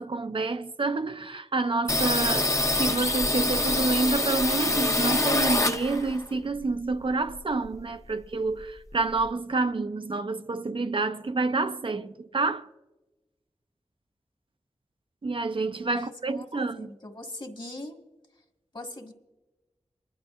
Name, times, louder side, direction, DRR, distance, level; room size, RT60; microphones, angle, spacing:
voice 1, 0.0-12.7 15.2-16.9, right 3 dB, 50° right, 0.5 m, -28 dB
sound 1, 1.9-6.2 6.6-7.9 8.2-8.3 8.6-9.3, left 2 dB, 25° left, 0.7 m, -26 dB
voice 2, 15.9-18.0 18.7-19.1, left 1 dB, 45° left, 1.5 m, -41 dB
27.0 x 11.0 x 2.5 m
wide cardioid pair, 50°, 12 cm